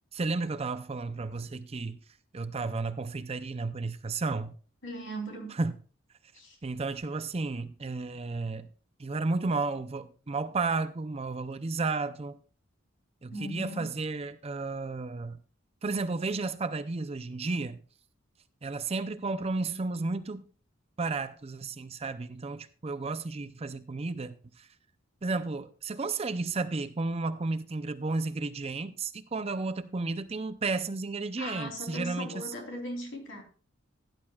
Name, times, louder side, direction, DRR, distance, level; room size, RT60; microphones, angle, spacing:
voice 1, 0.1-2.0 2.3-4.6 5.6-5.7 6.6-8.7 9.0-12.4 13.2-15.4 15.8-17.8 18.6-20.5 21.0-24.7 25.2-32.4, right 3 dB, 30° right, 0.5 m, -33 dB
voice 2, 4.8-5.6 6.3-6.6 13.3-13.9 31.4-33.4, equal, 65° left, 3.3 m, -39 dB
16.5 x 10.5 x 2.4 m
head